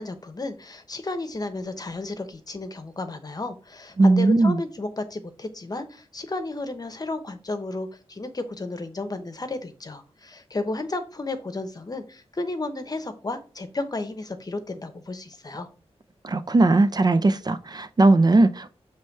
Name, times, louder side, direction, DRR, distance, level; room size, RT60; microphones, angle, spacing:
voice 1, 0.0-15.7, left 2 dB, 35° left, 0.9 m, -33 dB
voice 2, 4.0-4.6 16.2-18.7, right 2 dB, 40° right, 0.5 m, -19 dB
6.8 x 3.2 x 4.5 m
wide cardioid pair, 110°, 11 cm